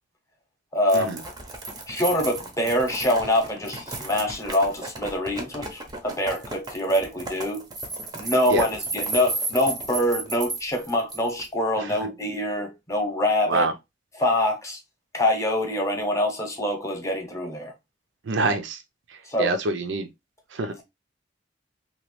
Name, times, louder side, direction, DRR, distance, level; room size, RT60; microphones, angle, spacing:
voice 1, 0.7-1.2 1.9-7.7 8.1-13.7 14.1-14.8 15.1-17.7 19.2-19.6 20.7-20.8, left 1 dB, 15° left, 0.8 m, -25 dB
sound 1, 0.9-11.5, right 3 dB, 20° right, 0.6 m, -34 dB
voice 2, 18.3-18.8 19.4-20.1 20.5-20.7, right 2 dB, 80° right, 0.5 m, -25 dB
3.0 x 2.3 x 3.0 m
head